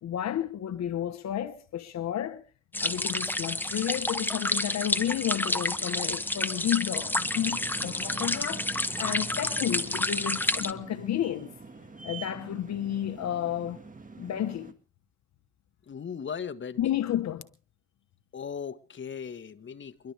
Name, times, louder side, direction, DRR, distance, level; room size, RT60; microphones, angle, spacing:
voice 1, 0.0-2.4 2.8-8.7 9.0-11.6 12.0-13.8 14.2-14.7 16.8-17.5, left 11 dB, 65° left, 1.1 m, -31 dB
sound 1, 2.7-10.7, left 1 dB, 5° left, 1.0 m, -30 dB
sound 2, 7.0-14.7, right 4 dB, 25° right, 1.9 m, -45 dB
voice 2, 15.9-16.8 18.3-20.1, left 7 dB, 40° left, 1.4 m, -38 dB
28.5 x 12.0 x 3.4 m
cardioid pair, 90°, 30 cm